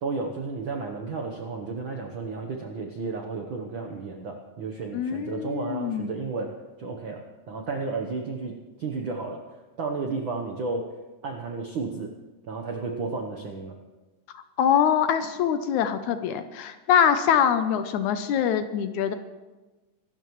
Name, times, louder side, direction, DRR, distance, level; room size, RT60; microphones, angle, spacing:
voice 1, 0.0-6.5 6.8-8.5 8.8-10.9 11.2-12.1 12.5-13.8, right 4 dB, 70° right, 3 dB, 1.1 m, -32 dB
voice 2, 4.9-6.1 14.3-19.1, left 8 dB, 75° left, 9 dB, 1.9 m, -24 dB
24.5 x 12.5 x 3.1 m, 1.2 s
omnidirectional pair, 3.8 m